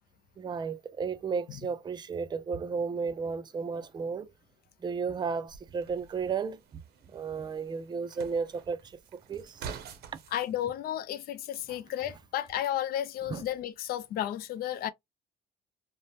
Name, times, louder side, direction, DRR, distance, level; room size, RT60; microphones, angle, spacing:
voice 1, 0.4-4.3 4.8-6.8 7.1-8.8 9.1-9.6 11.7-11.8 13.3-13.4, right 5 dB, 25° right, 0.4 m, -33 dB
sound 1, 5.5-10.5, right 6 dB, 75° right, 0.6 m, -47 dB
voice 2, 10.3-14.9, left 11 dB, 65° left, 0.4 m, -33 dB
2.7 x 2.0 x 3.1 m
cardioid pair, 110°, 17 cm